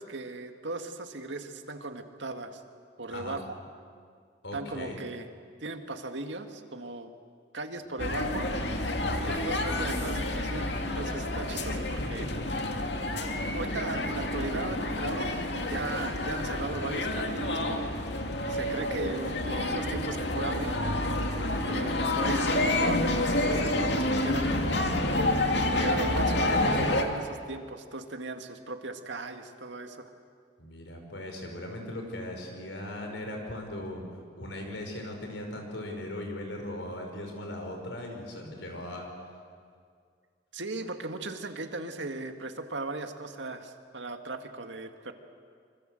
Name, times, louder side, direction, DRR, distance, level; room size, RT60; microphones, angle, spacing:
voice 1, 0.0-2.6 3.0-3.6 4.5-5.3 5.6-7.1 7.5-8.5 9.3-12.3 13.5-17.9 18.5-20.8 21.7-25.0 25.6-30.0 40.5-45.1, right 2 dB, 85° right, 6 dB, 2.0 m, -37 dB
voice 2, 4.4-5.0 8.1-9.4 11.7-12.5 21.4-21.7 30.6-34.0 34.3-39.1, left 1 dB, 90° left, 3 dB, 5.5 m, -39 dB
sound 1, 8.0-27.0, left 1 dB, 70° left, 2.3 m, -29 dB
26.5 x 25.0 x 7.8 m, 2.1 s
head